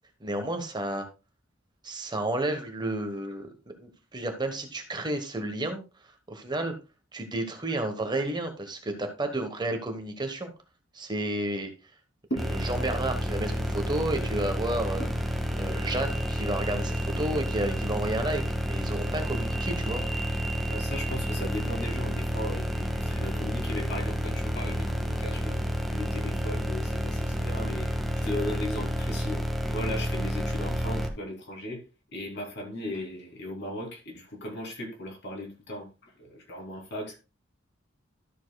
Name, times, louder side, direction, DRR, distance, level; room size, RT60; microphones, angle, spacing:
voice 1, 0.2-1.0 1.8-3.5 3.8-5.8 6.3-6.7 7.1-10.5 10.9-11.7 12.5-15.1 15.5-20.0, right 1 dB, 20° right, 5 dB, 1.2 m, -31 dB
sound 1, 12.4-31.1, equal, ahead, 1.2 m, -30 dB
voice 2, 20.7-29.4 29.7-31.8 32.1-37.2, left 1 dB, 60° left, 1 dB, 2.9 m, -37 dB
13.0 x 7.3 x 2.3 m, 0.29 s
head